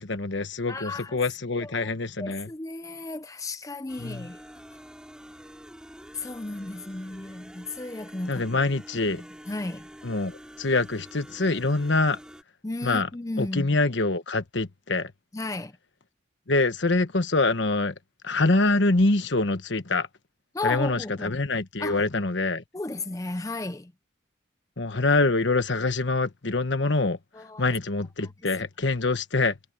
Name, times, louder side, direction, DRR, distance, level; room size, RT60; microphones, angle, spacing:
voice 1, 0.0-2.5 4.0-4.3 8.3-9.2 10.0-12.2 12.8-13.1 13.4-15.1 16.5-17.9 18.2-20.1 20.6-22.6 24.8-27.2 27.6-29.6, left 3 dB, 65° left, 1.3 m, -25 dB
voice 2, 0.7-1.2 1.6-1.9 2.2-4.4 6.1-8.4 9.1-9.2 9.5-9.9 12.6-13.7 15.3-15.7 20.5-21.4 21.8-22.0 22.7-23.9 27.4-27.7, left 2 dB, 15° left, 0.5 m, -34 dB
sound 1, 3.9-12.4, equal, 5° right, 4.4 m, -47 dB
head